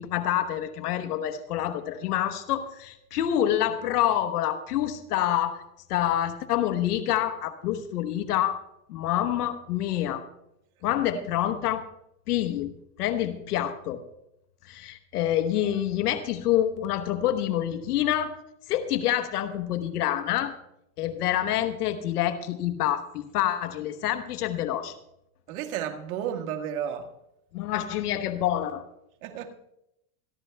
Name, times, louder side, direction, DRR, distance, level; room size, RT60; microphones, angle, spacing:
voice 1, 0.0-5.6 5.9-8.6 8.9-10.2 10.8-11.8 12.3-12.7 13.0-14.0 14.6-18.4 18.7-20.5 21.0-24.9 27.5-28.8, left 11 dB, 85° left, 9 dB, 1.2 m, -27 dB
voice 2, 25.5-27.1 29.2-29.5, right 9 dB, 70° right, 3 dB, 1.7 m, -32 dB
27.0 x 11.0 x 2.3 m, 0.82 s
supercardioid pair, 130°, 45 cm